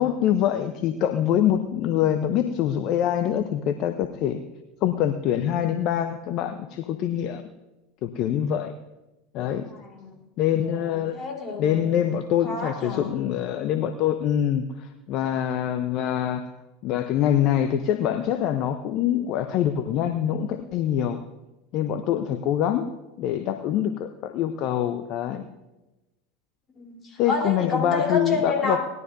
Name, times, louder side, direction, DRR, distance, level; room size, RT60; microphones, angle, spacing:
voice 1, 0.0-4.4 4.8-7.4 8.0-8.7 9.3-9.7 10.4-11.2 11.6-16.5 16.8-21.2 21.7-22.9 23.2-25.5 27.2-28.8, left 10 dB, 50° left, 9 dB, 0.7 m, -24 dB
voice 2, 9.7-10.3 10.7-11.8 12.4-13.1 26.8-28.9, left 3 dB, 30° left, 0 dB, 3.6 m, -29 dB
19.5 x 12.0 x 2.7 m, 1.0 s
hypercardioid pair, 80°, 0 cm